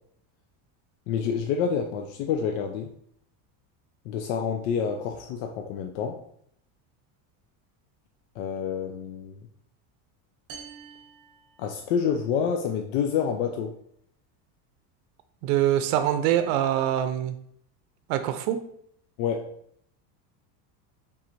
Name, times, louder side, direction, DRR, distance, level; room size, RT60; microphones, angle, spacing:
voice 1, 1.1-2.9 4.1-6.2 8.4-9.4 11.6-13.7 19.2-19.5, left 7 dB, 70° left, 4 dB, 0.5 m, -28 dB
sound 1, 10.5-12.2, right 6 dB, 45° right, 0.7 m, -47 dB
voice 2, 15.4-17.4 18.1-18.6, right 11 dB, 90° right, 9 dB, 0.5 m, -24 dB
4.3 x 3.6 x 2.6 m, 0.68 s
cardioid pair, 170°, 48 cm